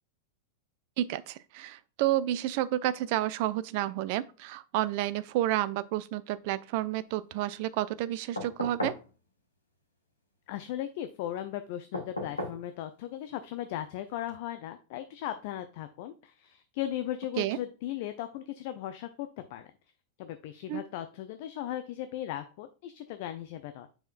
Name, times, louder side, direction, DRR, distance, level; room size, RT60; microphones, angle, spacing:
voice 1, 1.0-9.0 17.4-17.6 20.7-20.8, right 14 dB, 45° right, 0.4 m, -30 dB
sound 1, 8.4-9.1 11.9-12.6 14.3-14.4, left 1 dB, 80° left, 1.2 m, -35 dB
voice 2, 10.5-19.7 20.2-23.9, left 12 dB, 50° left, 0.5 m, -37 dB
6.9 x 5.6 x 2.4 m
figure-of-eight pair, 90°, 0 cm